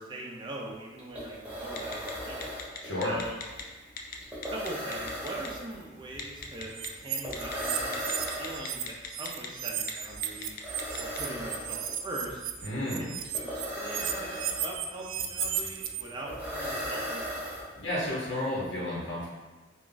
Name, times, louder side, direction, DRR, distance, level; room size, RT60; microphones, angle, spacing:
voice 1, 0.0-2.5 3.0-3.4 4.5-10.6 11.0-12.4 13.0-17.3, right 2 dB, 25° right, -2 dB, 0.5 m, -41 dB
sound 1, 1.0-18.1, equal, 5° right, 1.1 m, -38 dB
Telephone, 1.8-2.1 2.4-3.6 4.0-4.2 4.4-5.5 6.2-6.9 7.3-7.5 7.9-9.5 9.8-9.9 10.2-11.2, left 7 dB, 45° left, 0.4 m, -38 dB
voice 2, 2.8-3.1 12.6-13.0 17.7-19.3, left 1 dB, 85° left, -7 dB, 1.0 m, -31 dB
sound 2, 6.7-8.8 9.1-16.0, right 9 dB, 80° right, 0.3 m, -34 dB
3.5 x 2.4 x 3.9 m, 1.2 s
head